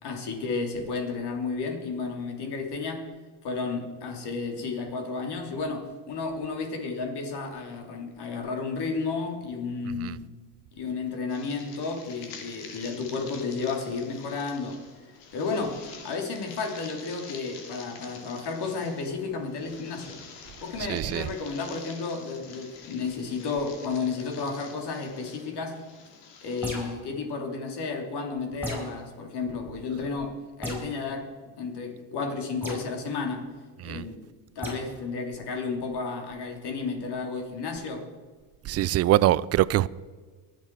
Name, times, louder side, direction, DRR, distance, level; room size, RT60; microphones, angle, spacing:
voice 1, 0.0-3.1 3.4-10.3 10.8-14.9 15.3-20.2 20.6-25.9 26.4-33.6 33.8-34.3 34.5-38.1, left 4 dB, 55° left, 3.2 m, -32 dB
sound 1, 11.3-26.9, left 5 dB, 75° left, 2.6 m, -47 dB
voice 2, 20.9-21.3 33.8-34.0 38.6-39.9, right 14 dB, 35° right, 0.4 m, -23 dB
sound 2, 26.6-27.1 28.6-29.0 30.6-30.9 32.6-32.9 34.6-34.8, equal, 5° right, 5.4 m, -34 dB
24.0 x 8.0 x 4.7 m
supercardioid pair, 100°, 49 cm